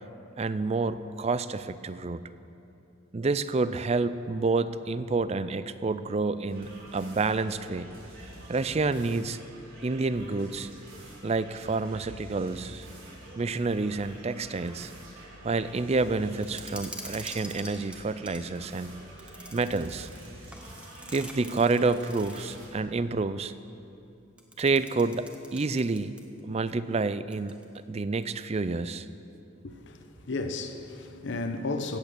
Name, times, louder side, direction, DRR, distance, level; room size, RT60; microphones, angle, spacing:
voice 1, 0.4-2.2 3.1-7.9 8.5-9.4 9.8-10.7 11.2-12.9 13.4-14.9 15.4-19.0 19.5-20.1 21.1-23.5 24.6-26.1 26.4-27.5 27.9-29.1, right 3 dB, 30° right, 0.4 m, -28 dB
sound 1, 6.5-22.7, right 1 dB, 85° right, 4.1 m, -47 dB
sound 2, 16.4-18.5 19.2-22.7 24.4-26.4 26.7-26.8 27.3-27.8, right 1 dB, 5° right, 1.1 m, -45 dB
voice 2, 29.6-32.0, left 3 dB, 60° left, 0.9 m, -34 dB
16.5 x 8.9 x 6.9 m
head